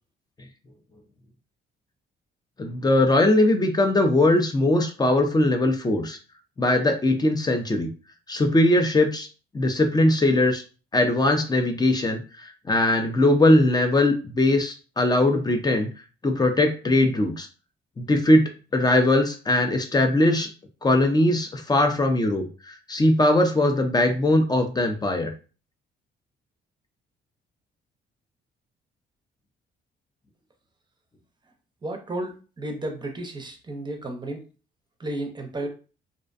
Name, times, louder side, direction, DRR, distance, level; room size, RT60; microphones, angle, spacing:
voice 1, 2.6-6.2 6.6-7.9 8.3-9.3 9.5-10.6 10.9-12.2 12.7-15.9 16.2-17.5 18.0-20.5 20.8-25.3, left 1 dB, 20° left, 5 dB, 0.5 m, -20 dB
voice 2, 31.8-34.5 35.0-35.7, right 1 dB, 20° right, 4 dB, 0.6 m, -33 dB
2.5 x 2.1 x 2.4 m, 0.35 s
cardioid pair, 90°, 20 cm